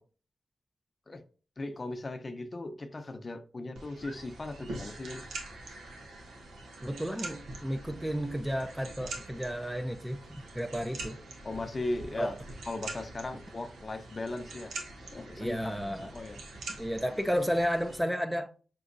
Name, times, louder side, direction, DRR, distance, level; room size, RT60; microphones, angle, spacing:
voice 1, 1.6-5.2 11.4-12.3 12.7-14.7 15.0-15.6 16.1-16.4 17.0-17.2, left 2 dB, 40° left, 0.7 m, -37 dB
sound 1, 3.7-18.0, right 2 dB, 90° right, 1.0 m, -44 dB
voice 2, 6.8-11.2 12.2-12.3 15.4-16.1 16.8-18.5, equal, 5° right, 0.5 m, -32 dB
6.1 x 2.8 x 2.6 m
cardioid pair, 60°, 0 cm